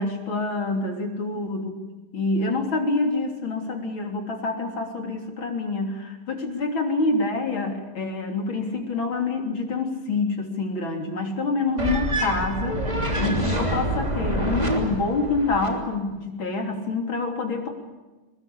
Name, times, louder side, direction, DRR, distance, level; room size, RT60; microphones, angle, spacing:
voice 1, 0.0-1.7 2.1-17.7, left 3 dB, 65° left, 3 dB, 4.0 m, -27 dB
sound 1, 11.8-15.8, right 1 dB, 20° right, 3.2 m, -26 dB
23.5 x 20.5 x 8.6 m, 1.2 s
omnidirectional pair, 2.3 m